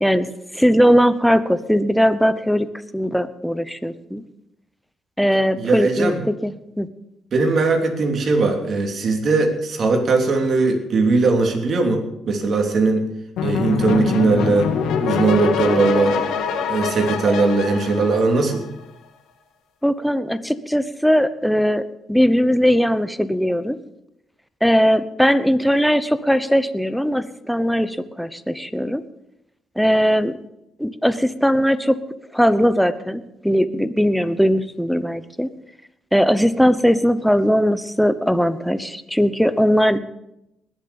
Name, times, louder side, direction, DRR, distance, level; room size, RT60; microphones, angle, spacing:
voice 1, 0.0-2.7 2.9-4.2 5.2-6.1 6.4-6.9 17.3-17.4 19.8-23.8 24.6-29.0 29.8-30.4 30.8-32.0 32.3-35.5 36.1-40.0, equal, ahead, 13 dB, 0.9 m, -19 dB
voice 2, 5.6-6.2 7.3-13.1 13.4-14.7 15.0-16.2 16.7-18.7, right 3 dB, 55° right, 3 dB, 3.1 m, -19 dB
sound 1, 13.4-18.8, left 6 dB, 85° left, 1.9 m, -24 dB
20.5 x 7.3 x 7.1 m, 0.86 s
cardioid pair, 90°, 0 cm